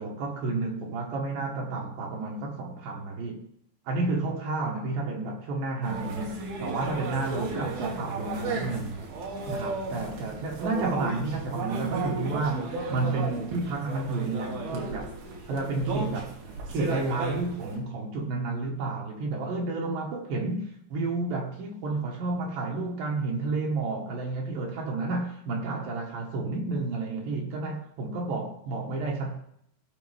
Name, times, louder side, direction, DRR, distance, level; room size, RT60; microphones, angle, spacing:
voice 1, 0.0-3.5 3.9-9.0 9.5-15.1 15.5-16.4 16.7-29.4, right 3 dB, 70° right, 3.5 m, -31 dB
sound 1, 5.8-17.8, right 3 dB, 90° right, 4.2 m, -35 dB
17.0 x 7.5 x 3.6 m
omnidirectional pair, 4.3 m